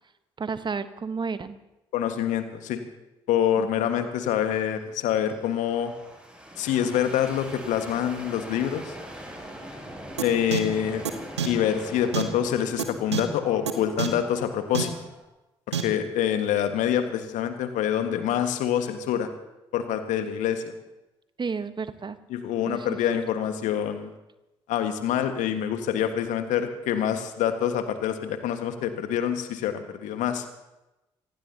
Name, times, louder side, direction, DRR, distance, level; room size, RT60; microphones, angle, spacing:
voice 1, 0.4-1.6 3.6-3.7 21.4-22.2 22.7-23.2, right 5 dB, 35° right, 12 dB, 1.2 m, -32 dB
voice 2, 1.9-2.8 3.3-5.9 6.6-8.9 10.2-11.0 11.4-14.9 15.7-19.3 19.7-20.7 22.3-24.1 24.7-30.4, left 9 dB, 65° left, 8 dB, 1.6 m, -26 dB
sound 1, 4.4-15.2, equal, 10° right, 7.6 m, -42 dB
sound 2, 10.2-10.3 10.5-10.6 11.0-11.1 11.4-11.5 12.1-12.2 12.8-12.9 13.1-13.2 13.7-13.8 14.0-14.1 14.7-14.8 15.7-15.8, right 8 dB, 85° right, 1.0 m, -26 dB
26.0 x 18.5 x 2.9 m, 0.97 s
figure-of-eight pair, 40°, 14 cm